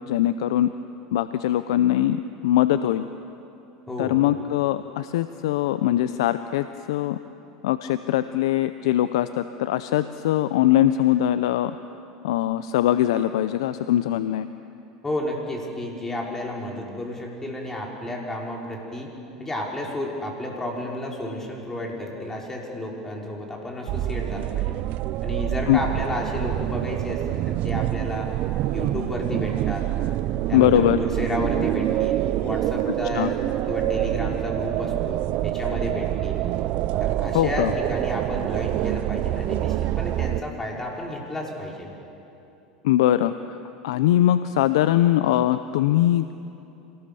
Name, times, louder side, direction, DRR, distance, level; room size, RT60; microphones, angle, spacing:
voice 1, 0.1-0.7 1.1-3.1 4.0-7.2 7.6-11.8 12.2-14.5 25.7-25.8 30.5-31.0 33.1-33.3 37.3-37.7 42.8-43.3 43.8-46.3, left 13 dB, 75° left, 12 dB, 0.6 m, -21 dB
voice 2, 3.9-4.2 15.0-19.1 19.4-24.7 25.2-28.3 28.7-29.9 30.5-33.3 33.7-36.4 37.0-41.9, left 1 dB, 15° left, -1 dB, 5.5 m, -32 dB
sound 1, 23.9-40.4, right 14 dB, 55° right, 0.6 m, -26 dB
26.5 x 19.0 x 7.0 m, 2.9 s
hypercardioid pair, 90°, 3 cm